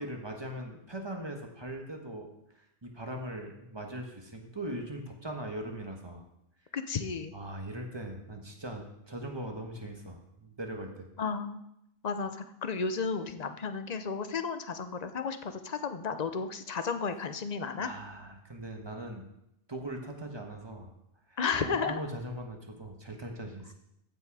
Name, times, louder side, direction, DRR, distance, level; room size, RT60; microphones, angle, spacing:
voice 1, 0.0-2.3 2.6-6.3 7.3-11.1 17.8-19.3 19.7-20.9 21.3-23.7, right 1 dB, 25° right, 2 dB, 1.4 m, -40 dB
voice 2, 6.7-7.3 11.2-11.6 12.0-17.9 21.4-22.0, left 5 dB, 45° left, 10 dB, 0.8 m, -33 dB
14.5 x 6.3 x 4.8 m, 0.82 s
omnidirectional pair, 1.1 m